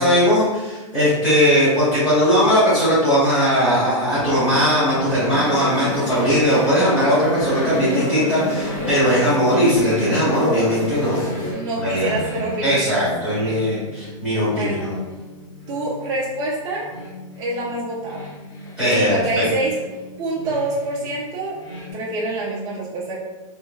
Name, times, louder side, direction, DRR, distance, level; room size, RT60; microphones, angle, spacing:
voice 1, 0.0-11.3 11.8-12.1 12.6-14.9 18.8-19.5, equal, 5° left, -14 dB, 1.3 m, -19 dB
sound 1, 4.1-21.9, equal, 30° left, 1.4 m, -35 dB
sound 2, 5.4-11.5, left 1 dB, 85° left, 1.2 m, -29 dB
voice 2, 11.5-12.9 13.3-13.6 14.2-15.0 15.7-16.9 17.4-18.3 18.8-19.8 20.2-21.6 21.9-23.2, right 2 dB, 20° right, -5 dB, 0.4 m, -26 dB
3.2 x 3.1 x 2.2 m, 1.2 s
supercardioid pair, 160°, 17 cm